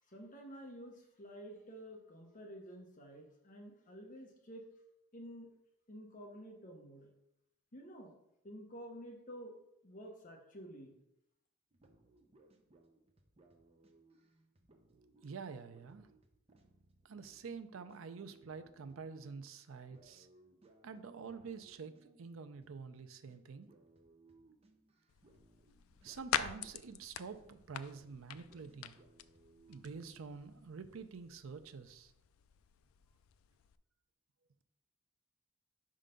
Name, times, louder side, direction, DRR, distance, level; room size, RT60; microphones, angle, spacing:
voice 1, 0.1-4.6 5.1-5.5 5.9-7.1 7.7-8.1 8.4-9.5 9.8-10.9, equal, 40° left, 2 dB, 0.8 m, -50 dB
sound 1, 11.7-23.0 23.3-23.4 23.7-30.5, right 2 dB, 30° right, 0.6 m, -66 dB
voice 2, 15.2-16.1 17.0-20.3 20.8-23.7 26.0-29.0 29.7-32.1, right 5 dB, 70° right, 10 dB, 0.5 m, -47 dB
sound 2, 25.1-33.8, left 10 dB, 75° left, 0.3 m, -45 dB
5.5 x 3.8 x 5.1 m, 0.82 s
head